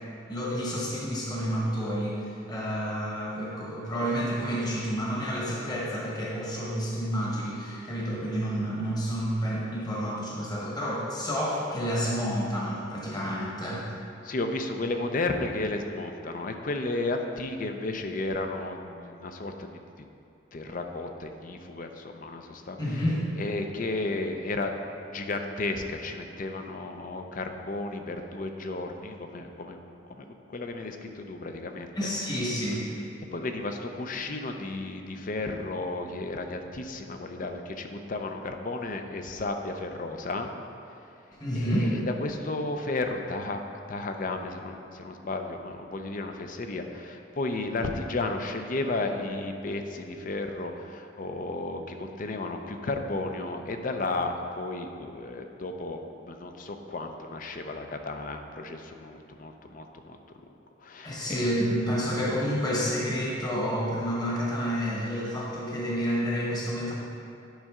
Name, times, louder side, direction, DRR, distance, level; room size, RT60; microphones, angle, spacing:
voice 1, 0.3-13.9 22.8-23.2 32.0-32.9 41.4-41.9 61.0-66.9, equal, 20° left, -5 dB, 1.2 m, -29 dB
voice 2, 14.2-19.7 20.5-22.8 23.4-24.7 25.1-29.8 30.1-30.2 30.5-31.9 33.3-40.5 41.6-43.6 43.9-60.2 60.8-61.4, left 2 dB, 45° left, 5 dB, 0.5 m, -33 dB
10.5 x 5.4 x 3.6 m, 2.7 s
head